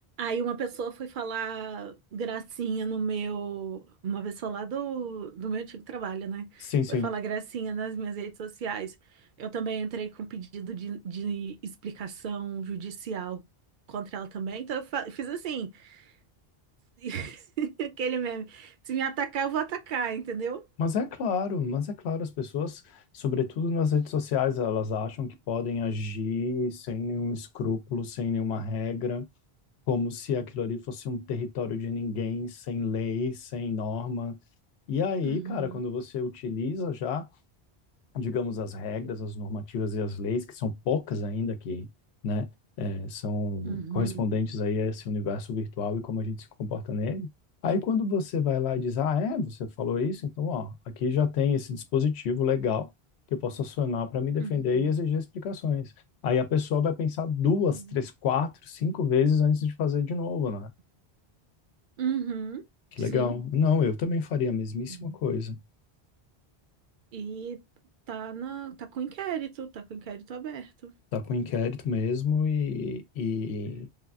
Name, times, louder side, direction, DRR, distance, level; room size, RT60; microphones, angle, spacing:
voice 1, 0.2-8.9 9.4-13.4 13.9-16.1 17.0-20.6 35.2-35.8 43.6-44.1 54.4-54.9 57.7-58.0 62.0-62.6 63.1-63.3 64.9-65.2 67.1-67.6 68.1-70.9, right 6 dB, 60° right, 0.7 m, -34 dB
voice 2, 6.6-7.1 20.8-29.3 29.9-34.3 34.9-37.3 38.1-41.9 42.2-42.5 42.8-47.3 47.6-52.9 53.3-55.9 56.2-60.7 63.0-65.6 71.1-73.9, left 5 dB, 85° left, 0.8 m, -28 dB
3.3 x 2.4 x 2.3 m
omnidirectional pair, 1.1 m